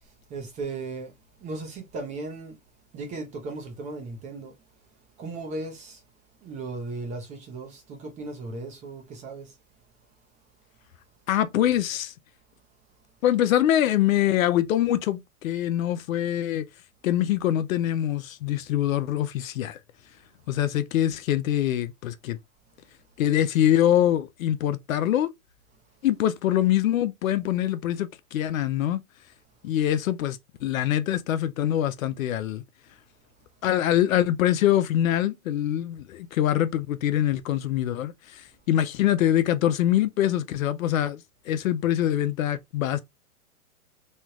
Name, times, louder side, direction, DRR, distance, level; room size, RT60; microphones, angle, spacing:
voice 1, 0.0-1.1 1.4-2.6 2.9-4.5 5.2-6.0 6.4-9.6, right 3 dB, 15° right, 0.6 m, -36 dB
voice 2, 11.3-12.1 13.2-16.7 17.0-19.8 20.5-22.4 23.2-25.3 26.0-29.0 29.6-32.6 33.6-43.0, left 12 dB, 65° left, 0.5 m, -24 dB
3.2 x 2.3 x 2.9 m
hypercardioid pair, 135°, 43 cm